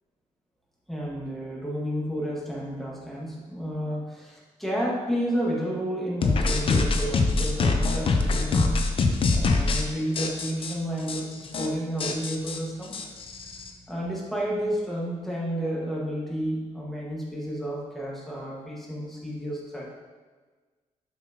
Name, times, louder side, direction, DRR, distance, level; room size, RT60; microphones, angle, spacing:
voice 1, 0.9-8.7 9.3-12.9 13.9-20.0, equal, ahead, -5 dB, 1.5 m, -31 dB
sound 1, 6.2-9.8 10.2-10.7 11.1-11.2 11.4-11.7 12.0-13.7, left 3 dB, 40° left, 0.7 m, -24 dB
7.2 x 5.5 x 2.9 m, 1.4 s
cardioid pair, 130°, 13 cm